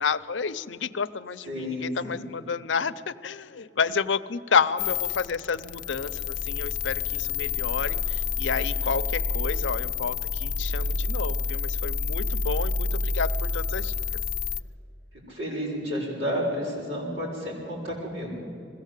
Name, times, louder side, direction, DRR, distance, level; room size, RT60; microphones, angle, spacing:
voice 1, 0.0-13.9, left 5 dB, 90° left, 12 dB, 0.7 m, -30 dB
voice 2, 1.5-2.2 15.3-18.4, equal, 80° right, -3 dB, 6.8 m, -31 dB
sound 1, 4.8-14.6, left 4 dB, 45° left, 0.6 m, -28 dB
21.0 x 16.0 x 8.3 m, 2.6 s
head